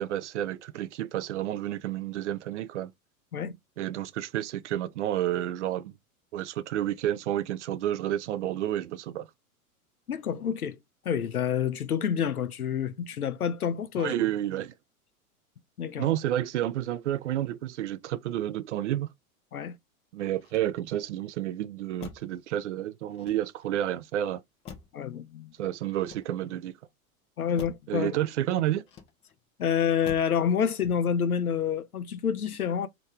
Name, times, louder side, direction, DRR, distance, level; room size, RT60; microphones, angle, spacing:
voice 1, 0.0-2.9 3.8-5.9 6.3-9.3 14.0-14.7 16.0-19.1 20.1-24.4 25.6-26.7 27.9-28.8, right 12 dB, 55° right, 0.5 m, -30 dB
voice 2, 10.1-10.8 11.0-14.1 15.8-16.1 19.5-19.8 24.9-25.5 27.4-28.1 29.6-32.9, left 8 dB, 80° left, 0.6 m, -28 dB
Motor vehicle (road), 20.4-21.1 22.0-22.4 23.1-23.8 24.7-25.1 25.9-26.7 27.6-27.9 28.8-29.4 30.0-30.4 30.8-31.2, left 7 dB, 15° left, 0.4 m, -47 dB
3.1 x 3.0 x 3.4 m
figure-of-eight pair, 90°, 43 cm